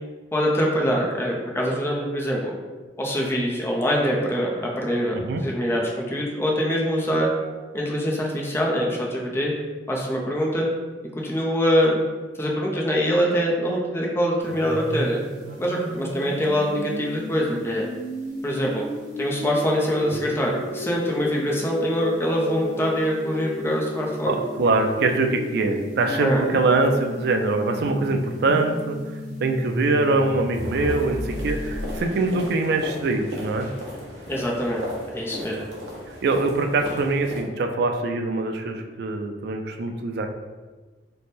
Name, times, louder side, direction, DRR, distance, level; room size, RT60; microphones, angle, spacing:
voice 1, 0.3-2.5 3.0-7.3 7.7-9.5 9.9-10.7 11.2-12.0 12.4-15.2 15.6-17.9 18.4-18.8 19.2-24.4 26.2-26.4 34.3-34.8 35.1-35.6, equal, 15° left, -2 dB, 0.5 m, -24 dB
sound 1, 14.4-32.0, equal, 45° right, 0.9 m, -34 dB
voice 2, 24.2-29.0 29.4-33.7 35.5-35.7 36.2-40.3, right 3 dB, 60° right, 5 dB, 0.4 m, -23 dB
sound 2, 30.5-37.4, equal, 90° right, 0.9 m, -37 dB
3.3 x 2.1 x 4.2 m, 1.3 s
head